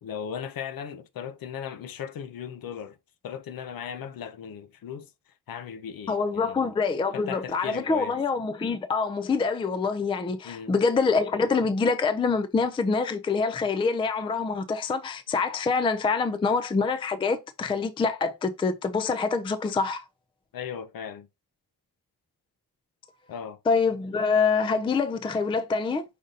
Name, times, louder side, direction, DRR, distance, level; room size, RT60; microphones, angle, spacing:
voice 1, 0.0-3.0 3.2-5.1 5.5-6.7 7.1-8.2 10.4-10.7 20.5-21.3 23.3-23.6, left 8 dB, 65° left, 0.6 m, -37 dB
voice 2, 6.1-20.0 23.7-26.0, left 4 dB, 15° left, 0.3 m, -25 dB
5.1 x 2.5 x 3.9 m
wide cardioid pair, 145°, 38 cm